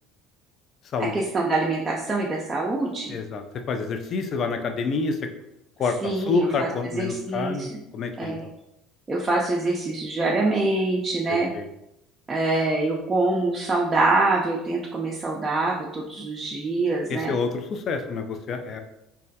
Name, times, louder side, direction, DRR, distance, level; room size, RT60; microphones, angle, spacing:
voice 1, 1.0-3.2 6.0-6.7 6.9-7.7 8.2-8.4 9.1-11.5 12.3-17.3, right 2 dB, 25° right, -3 dB, 0.4 m, -25 dB
voice 2, 3.1-5.3 5.8-8.5 11.3-11.7 17.1-18.8, left 4 dB, 50° left, 6 dB, 0.3 m, -28 dB
2.2 x 2.1 x 2.7 m, 0.83 s
hypercardioid pair, 80°, 0 cm